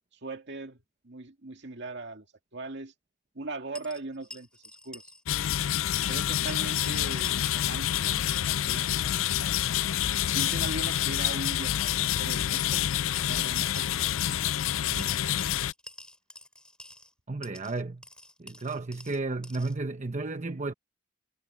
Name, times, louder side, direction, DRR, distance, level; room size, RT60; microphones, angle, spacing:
voice 1, 0.1-2.3 2.5-2.9 3.3-5.1 6.0-9.6 10.3-13.9, right 2 dB, 60° right, 2.2 m, -40 dB
sound 1, 3.7-5.2 5.5-5.6 6.5-7.7 8.0-9.1 10.0-12.2 13.2-14.2 15.0-17.1 17.4-19.8, left 1 dB, 5° left, 4.4 m, -49 dB
sound 2, 5.3-15.7, left 11 dB, 75° left, 0.4 m, -28 dB
voice 2, 17.3-18.0 18.4-20.7, right 3 dB, 35° right, 0.9 m, -33 dB
head